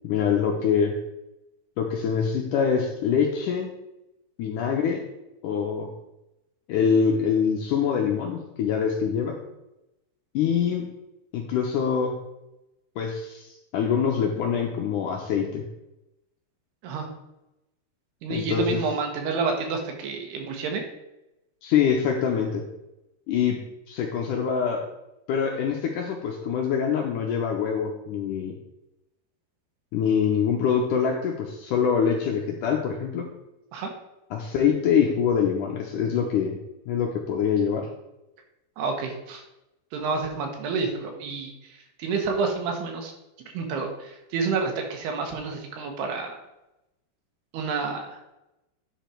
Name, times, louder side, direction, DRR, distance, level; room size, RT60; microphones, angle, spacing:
voice 1, 0.0-0.9 1.8-3.7 4.4-5.0 5.4-5.9 6.7-9.4 10.3-10.9 11.3-12.1 13.0-15.6 18.3-18.8 21.6-22.6 23.3-23.6 23.9-24.8 25.3-28.5 29.9-33.3 34.3-36.6 36.9-37.9, left 7 dB, 75° left, 1 dB, 1.9 m, -24 dB
voice 2, 18.2-20.8 33.7-33.9 38.8-39.4 39.9-43.1 43.5-46.4 47.5-48.2, right 4 dB, 85° right, 3 dB, 3.4 m, -29 dB
10.0 x 5.1 x 4.4 m, 0.92 s
omnidirectional pair, 4.5 m